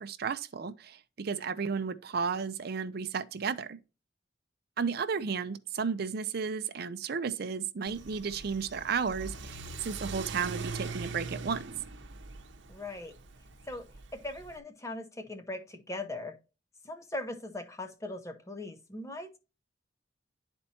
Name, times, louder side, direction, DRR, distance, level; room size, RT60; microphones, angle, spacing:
voice 1, 0.0-3.8 4.8-11.6, right 5 dB, 55° right, 0.5 m, -33 dB
Car / Accelerating revving vroom, 7.9-14.6, right 3 dB, 70° right, 0.8 m, -42 dB
voice 2, 12.7-13.1 13.7-16.4 16.8-19.4, left 2 dB, 15° left, 0.7 m, -40 dB
11.0 x 4.3 x 2.8 m
head